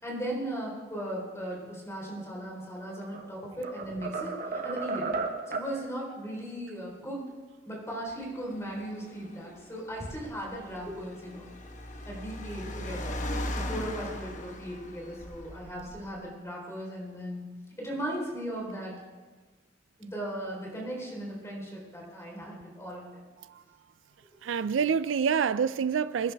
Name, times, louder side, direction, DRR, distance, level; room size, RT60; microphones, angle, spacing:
voice 1, 0.0-5.1 5.5-7.3 7.7-11.5 12.1-13.2 13.5-17.4 17.8-18.9 20.0-23.2, right 1 dB, 15° left, 4.0 m, -37 dB
sound 1, 2.8-3.3 3.6-5.8, right 4 dB, 50° right, 1.3 m, -34 dB
Car, 8.2-16.2, left 1 dB, 40° left, 1.2 m, -39 dB
voice 2, 24.4-26.3, right 6 dB, 80° right, 0.4 m, -27 dB
24.5 x 10.5 x 3.5 m
head